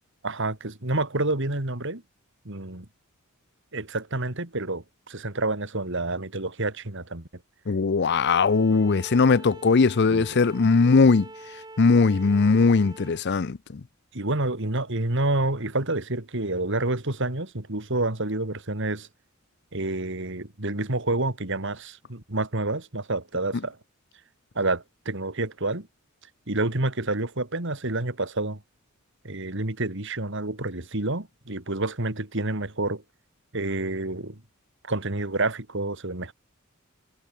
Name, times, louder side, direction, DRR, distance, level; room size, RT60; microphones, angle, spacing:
voice 1, 0.2-2.0 2.4-2.9 3.7-7.3 10.1-10.3 14.1-19.1 19.7-23.8 24.5-25.9 26.5-28.6 29.2-33.0 33.5-34.4 34.8-36.3, right 2 dB, 60° right, 2.8 m, -28 dB
voice 2, 7.7-11.3 11.8-13.8, left 4 dB, 55° left, 0.6 m, -20 dB
Bowed string instrument, 8.2-13.2, right 2 dB, 20° right, 7.9 m, -45 dB
head